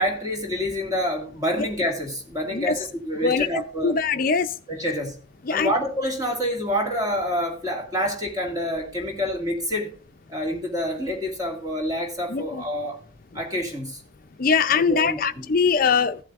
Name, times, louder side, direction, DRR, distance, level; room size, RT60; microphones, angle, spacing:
voice 1, 0.0-4.0 4.7-5.2 5.5-9.9 10.3-13.0 13.3-14.0 14.9-15.5, equal, 20° right, 2.1 m, -27 dB
voice 2, 3.8-4.5 5.4-5.7 12.3-12.6 14.4-16.2, left 5 dB, 45° left, 0.5 m, -22 dB
15.5 x 8.0 x 2.5 m
head